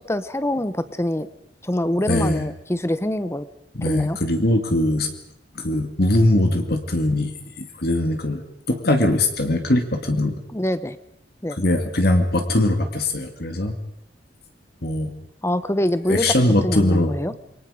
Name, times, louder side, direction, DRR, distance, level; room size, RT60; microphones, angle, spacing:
voice 1, 0.1-1.3 1.6-3.5 3.8-4.2 10.5-11.0 11.4-11.6 15.4-16.3 16.6-17.3, left 1 dB, 15° left, 13 dB, 1.0 m, -24 dB
voice 2, 2.1-2.4 3.7-5.1 5.6-7.3 7.6-10.4 11.6-13.8 14.8-15.1 16.1-17.1, left 1 dB, 60° left, 5 dB, 2.2 m, -21 dB
28.0 x 23.5 x 5.1 m, 0.76 s
head